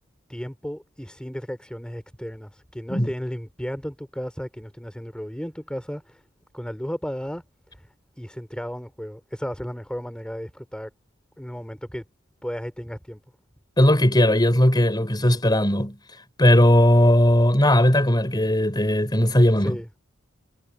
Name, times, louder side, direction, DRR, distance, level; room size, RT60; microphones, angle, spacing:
voice 1, 0.3-6.2 6.5-7.4 7.7-7.9 8.2-10.9 11.4-12.0 12.4-13.2 19.6-20.0, equal, 5° left, 3.8 m, -34 dB
voice 2, 13.8-16.0 16.4-19.8, left 1 dB, 20° left, 4.5 m, -18 dB
head